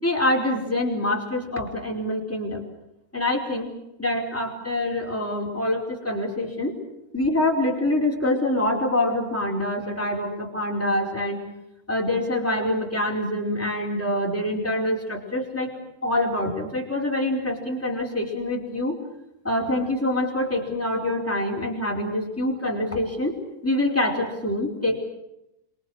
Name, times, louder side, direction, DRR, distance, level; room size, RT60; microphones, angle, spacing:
voice 1, 0.0-2.6 3.1-3.7 4.0-6.7 7.1-11.4 11.9-15.7 16.0-19.0 19.4-25.0, left 1 dB, 5° left, -1 dB, 4.7 m, -25 dB
27.5 x 24.5 x 6.5 m, 0.86 s
omnidirectional pair, 3.7 m